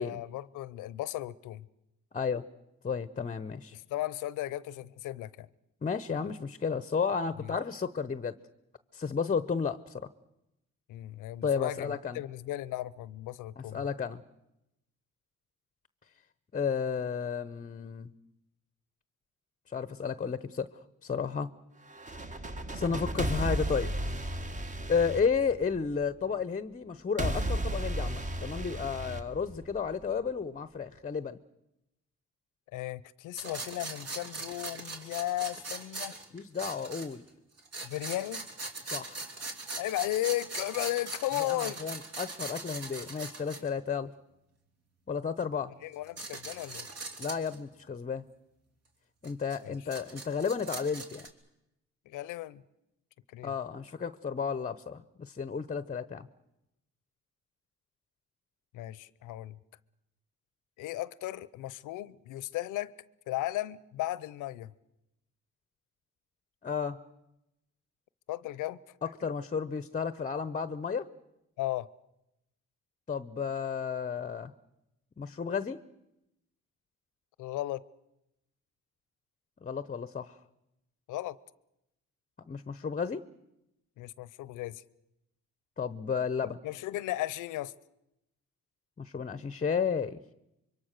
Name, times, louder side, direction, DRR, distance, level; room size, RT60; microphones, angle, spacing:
voice 1, 0.0-1.7 3.7-5.5 7.4-7.5 10.9-13.9 32.7-36.2 37.8-38.5 39.8-41.8 43.6-43.7 45.8-46.9 49.6-49.7 52.1-52.6 53.3-53.5 58.7-59.6 60.8-62.9 63.3-64.7 68.3-68.8 71.6-71.9 77.4-77.8 81.1-81.4 84.0-84.8 86.4-87.7, left 15 dB, 90° left, 0.8 m, -35 dB
voice 2, 2.1-2.5 2.8-3.8 5.8-8.4 8.9-10.1 11.4-12.2 13.6-14.2 16.5-18.1 19.7-21.5 22.3-23.9 24.9-31.4 36.3-37.2 38.9-39.3 41.4-44.1 45.1-45.7 47.2-48.2 49.2-51.3 53.4-56.3 66.6-67.0 69.0-71.1 73.1-74.5 75.2-75.8 79.6-80.4 82.5-83.2 85.8-86.6 89.0-90.2, left 6 dB, 25° left, 0.8 m, -32 dB
sound 1, 21.9-26.0 27.2-30.0, right 1 dB, 25° right, 1.4 m, -34 dB
sound 2, 33.4-37.3 37.6-43.7 45.4-45.5 45.9-47.6 49.2-51.3, right 3 dB, 55° right, 3.2 m, -41 dB
26.0 x 23.5 x 6.6 m
cardioid pair, 90°, 30 cm